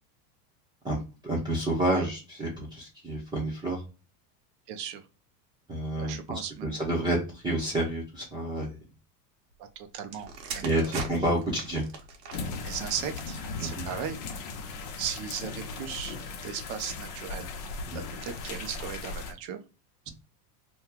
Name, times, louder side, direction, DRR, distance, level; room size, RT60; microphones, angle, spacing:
voice 1, 0.8-3.8 5.7-8.8 10.6-11.8 13.6-13.9 17.9-18.0, right 1 dB, 10° right, -5 dB, 0.8 m, -29 dB
voice 2, 4.7-5.0 6.0-6.8 9.6-10.9 12.6-14.2 14.8-16.2 16.4-17.5 17.9-19.6, right 8 dB, 40° right, 8 dB, 0.6 m, -37 dB
sound 1, 10.0-13.9 14.7-14.9, right 4 dB, 90° right, 1.2 m, -40 dB
sound 2, 12.3-19.3, left 4 dB, 50° left, 0.9 m, -38 dB
3.0 x 2.3 x 3.6 m, 0.31 s
supercardioid pair, 140°, 48 cm